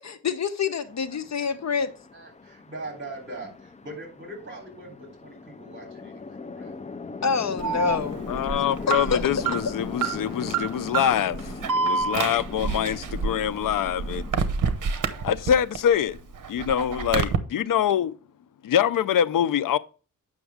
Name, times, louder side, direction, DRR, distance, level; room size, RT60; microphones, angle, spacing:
voice 1, 0.0-1.9 7.2-8.3 9.1-9.2, left 6 dB, 55° left, 0.9 m, -27 dB
Chatter / Traffic noise roadway noise / Train, 0.9-14.3, left 4 dB, 20° left, 0.4 m, -39 dB
voice 2, 2.1-6.7 8.7-9.1 9.4-9.6 14.8-15.0, right 2 dB, 35° right, 3.4 m, -41 dB
Alarm, 7.6-15.8 16.1-17.4, right 5 dB, 65° right, 0.9 m, -28 dB
voice 3, 8.3-14.2 15.2-16.2 16.5-18.2 18.6-19.8, left 9 dB, 70° left, 0.5 m, -24 dB
7.9 x 6.1 x 3.4 m
wide cardioid pair, 115°, 34 cm